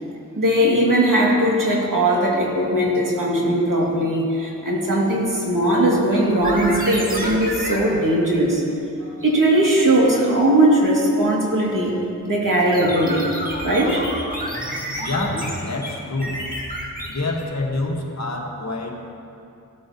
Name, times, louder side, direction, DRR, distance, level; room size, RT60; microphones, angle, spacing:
voice 1, 0.4-8.6 9.0-12.0 12.2-13.2 13.6-14.1, right 1 dB, 70° right, -4 dB, 2.3 m, -19 dB
sound 1, 6.4-7.9 12.7-17.4, equal, 25° right, 1.8 m, -29 dB
voice 2, 15.0-16.4 17.1-19.1, left 2 dB, 50° left, 0 dB, 1.5 m, -27 dB
16.5 x 9.1 x 2.9 m, 2.6 s
wide cardioid pair, 50°, 34 cm